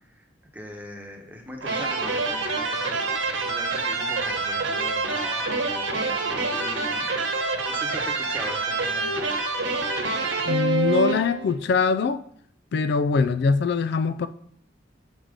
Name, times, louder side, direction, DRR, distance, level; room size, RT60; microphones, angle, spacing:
voice 1, 0.5-3.2 3.4-7.1 7.7-9.3, equal, 10° right, 1.0 m, -40 dB
sound 1, 1.6-11.6, right 3 dB, 85° right, 1.1 m, -26 dB
voice 2, 10.5-12.2 12.7-14.3, left 4 dB, 60° left, 0.3 m, -22 dB
7.2 x 3.6 x 5.1 m
head